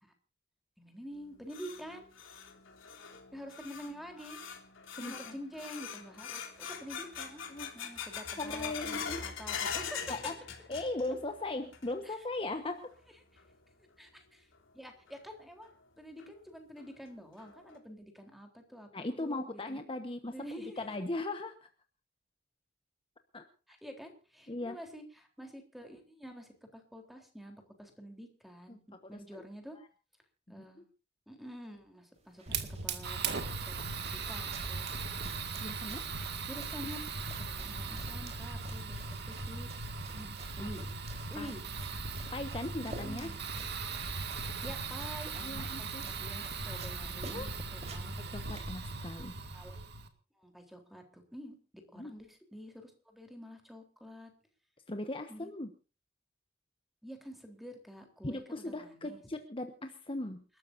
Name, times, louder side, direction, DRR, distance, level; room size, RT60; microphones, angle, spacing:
voice 1, 0.8-2.1 3.3-4.4 5.0-7.5 7.7-10.0 12.0-12.2 13.3-13.4 14.0-14.5 14.7-15.7 16.0-19.8 20.3-21.0 23.7-29.8 30.5-30.8 31.3-34.9 35.8-37.0 37.4-39.7 40.6-40.9 41.3-41.6 43.0-43.5 44.6-48.4 49.5-49.8 50.3-51.6 51.9-54.3 55.3-55.5 57.0-59.2, equal, ahead, 4 dB, 3.7 m, -48 dB
sound 1, 1.1-11.3 11.5-12.1 12.5-12.6 13.4-13.5 15.1-15.2 15.6-15.7 16.2-16.3 16.8-16.9 17.4-17.8, left 7 dB, 85° left, 3.3 m, -42 dB
voice 2, 5.0-5.3 7.5-7.7 8.4-9.3 10.1-10.4 10.7-12.9 18.9-20.3 20.8-21.7 23.3-23.5 24.5-24.8 28.7-29.2 30.6-30.7 35.6-36.1 38.9-39.1 40.1-40.7 41.4-41.5 42.3-43.3 45.4-46.0 47.2-47.5 48.3-49.4 52.0-52.1 54.9-55.7 58.2-60.4, left 2 dB, 30° left, 6 dB, 1.3 m, -38 dB
sound 2, 32.1-49.1, right 2 dB, 35° right, 4.2 m, -53 dB
Fire, 32.5-50.1, right 4 dB, 60° right, 2.2 m, -39 dB
28.5 x 13.0 x 2.7 m, 0.34 s
head